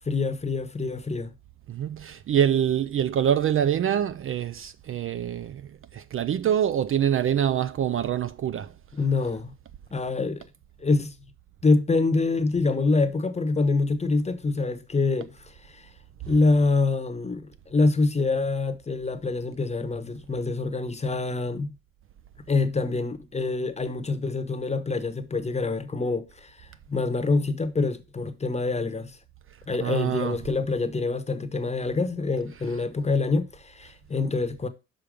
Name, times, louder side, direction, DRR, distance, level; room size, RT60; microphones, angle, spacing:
voice 1, 0.1-1.3 8.9-9.5 9.9-10.5 10.8-11.1 11.6-15.9 16.3-21.7 22.5-29.2 29.7-34.7, left 3 dB, 20° left, 0.9 m, -26 dB
voice 2, 1.7-8.7 29.8-30.4, right 9 dB, 45° right, 0.4 m, -25 dB
5.7 x 5.1 x 5.0 m
cardioid pair, 90°, 30 cm